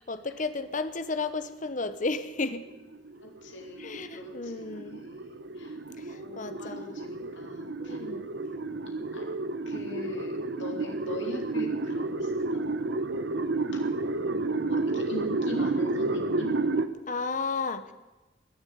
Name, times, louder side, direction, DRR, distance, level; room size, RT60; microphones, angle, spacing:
voice 1, 0.1-2.6 3.8-5.0 6.0-6.8 7.2-7.3 7.8-8.3 17.1-17.9, left 3 dB, 45° left, 11 dB, 0.9 m, -33 dB
sound 1, 2.5-16.9, right 2 dB, 65° right, 0.9 m, -31 dB
voice 2, 3.2-5.8 6.1-8.0 9.1-9.3 9.7-12.7 13.7-13.9 14.7-16.6, left 1 dB, 90° left, 2 dB, 2.6 m, -41 dB
20.5 x 7.1 x 9.4 m, 1.1 s
head